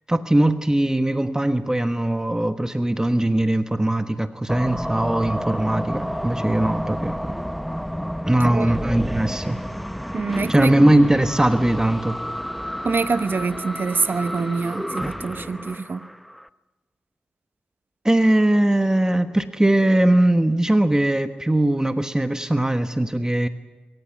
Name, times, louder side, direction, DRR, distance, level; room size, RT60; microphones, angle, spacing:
voice 1, 0.1-7.3 8.3-9.6 10.5-12.2 18.0-23.5, right 1 dB, 15° right, 1.3 m, -20 dB
sound 1, 4.5-16.5, equal, ahead, 0.8 m, -30 dB
voice 2, 8.4-8.7 10.1-10.7 12.8-16.1, right 4 dB, 60° right, 1.0 m, -25 dB
23.5 x 15.0 x 9.7 m
cardioid pair, 55°, 4 cm